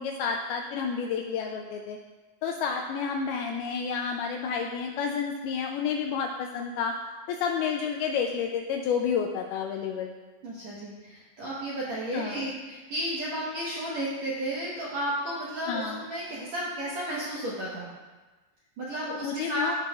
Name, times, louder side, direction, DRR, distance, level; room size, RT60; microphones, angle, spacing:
voice 1, 0.0-2.0 2.4-6.9 7.3-10.1 12.1-12.4 15.7-16.0 19.2-19.8, left 6 dB, 85° left, 3 dB, 2.2 m, -30 dB
voice 2, 10.4-17.9 18.8-19.7, right 1 dB, 70° right, -8 dB, 1.7 m, -33 dB
15.0 x 5.8 x 2.4 m, 1.2 s
omnidirectional pair, 4.9 m